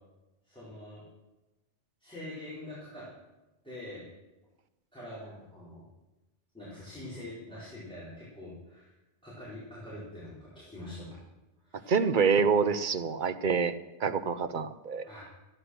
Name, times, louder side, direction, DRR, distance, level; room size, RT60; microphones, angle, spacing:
voice 1, 0.4-1.0 2.0-3.1 3.6-4.0 4.9-5.8 6.5-8.9 9.2-11.2 11.6-11.9 15.0-15.2, left 1 dB, 5° left, -10 dB, 4.4 m, -44 dB
voice 2, 11.9-13.7 14.0-15.1, right 5 dB, 50° right, 10 dB, 0.8 m, -26 dB
14.5 x 9.7 x 6.4 m, 1.0 s
omnidirectional pair, 1.2 m